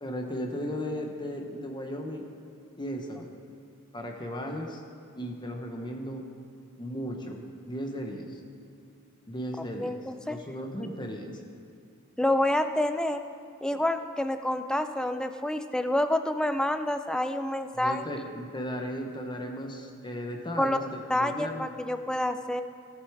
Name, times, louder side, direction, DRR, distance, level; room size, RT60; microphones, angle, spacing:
voice 1, 0.0-2.2 2.8-3.3 3.9-4.8 5.2-6.2 6.8-7.4 7.7-8.4 9.3-9.9 10.3-11.4 17.7-21.7, equal, 20° left, 2 dB, 0.9 m, -36 dB
voice 2, 9.8-10.4 12.2-13.2 13.6-18.1 20.6-20.8 21.1-22.6, left 1 dB, 5° left, 8 dB, 0.4 m, -28 dB
16.0 x 7.0 x 4.7 m, 2.5 s
head